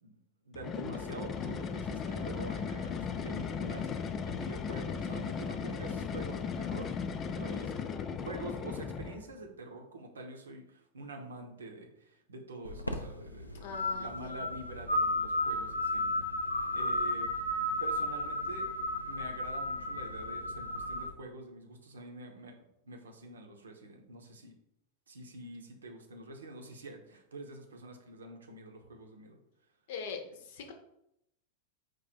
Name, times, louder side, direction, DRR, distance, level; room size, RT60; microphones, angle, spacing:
voice 1, 0.0-7.0 7.3-7.9 8.2-16.2 16.7-17.3 17.8-18.7 19.1-22.5 22.8-24.5 25.1-29.4, right 2 dB, 70° right, 3 dB, 0.8 m, -46 dB
sound 1, 0.5-9.3, left 6 dB, 25° left, 0.4 m, -36 dB
sound 2, 12.6-21.1, left 1 dB, 85° left, 0.5 m, -33 dB
voice 2, 13.5-14.5 29.9-30.7, left 5 dB, 55° left, 4 dB, 0.8 m, -43 dB
4.6 x 2.5 x 4.4 m, 0.80 s
figure-of-eight pair, 90°, 0 cm